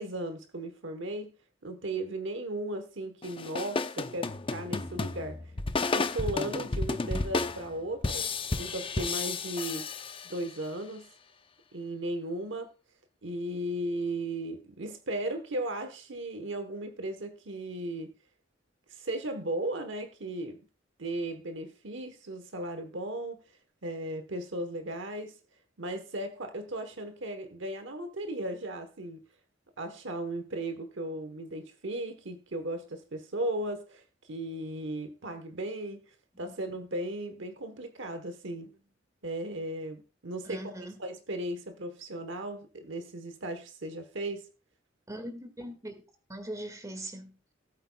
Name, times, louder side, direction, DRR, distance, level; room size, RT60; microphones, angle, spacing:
voice 1, 0.0-1.3 1.6-5.4 5.9-8.3 8.6-9.9 10.2-11.1 11.7-12.7 13.2-18.1 18.9-20.6 21.0-23.4 23.8-25.4 25.8-29.2 29.8-34.0 34.3-36.0 36.4-38.8 39.2-44.5, right 1 dB, 65° right, 1.1 m, -36 dB
sound 1, 3.2-10.6, left 3 dB, 30° left, 0.6 m, -32 dB
voice 2, 40.4-41.0 45.1-46.0 46.3-47.5, right 1 dB, 15° right, 1.9 m, -41 dB
18.5 x 8.3 x 2.3 m
head